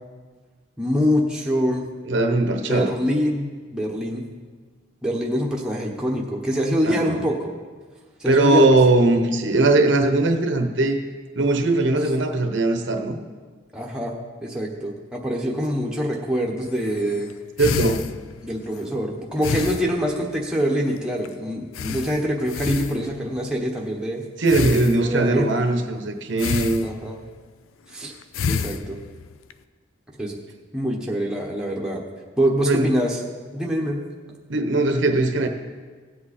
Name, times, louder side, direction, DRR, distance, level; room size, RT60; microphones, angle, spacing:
voice 1, 0.8-1.8 2.7-4.2 5.0-7.5 8.2-8.7 13.7-17.3 18.4-24.3 25.0-25.5 26.8-27.2 27.9-28.1 28.4-29.0 30.2-30.4 30.7-32.0 32.4-33.2 33.5-34.0, equal, 5° right, -2 dB, 1.1 m, -25 dB
voice 2, 2.0-2.9 6.8-7.2 8.3-11.0 11.3-13.2 17.6-18.1 24.4-26.8 32.6-32.9 34.5-35.5, right 2 dB, 60° right, 5 dB, 0.9 m, -20 dB
sound 1, 16.6-18.9 19.4-20.6 20.9-21.0 21.2-21.3 21.7-23.4 24.5-25.4 26.4-27.4 28.0-29.5, left 6 dB, 75° left, 0.4 m, -30 dB
16.5 x 7.7 x 4.2 m, 1.5 s
head